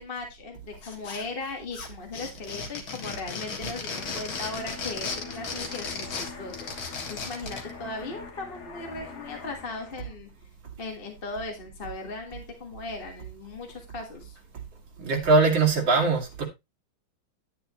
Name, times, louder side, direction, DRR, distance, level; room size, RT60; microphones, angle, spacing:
voice 1, 0.0-10.3 10.8-14.4, left 3 dB, 30° left, 1.7 m, -38 dB
sound 1, 0.8-1.5 1.7-7.7, left 4 dB, 75° left, 2.7 m, -35 dB
sound 2, 4.0-10.1, left 5 dB, 55° left, 2.2 m, -43 dB
voice 2, 15.0-16.4, right 3 dB, 65° right, 3.3 m, -21 dB
10.5 x 9.0 x 3.0 m
omnidirectional pair, 2.2 m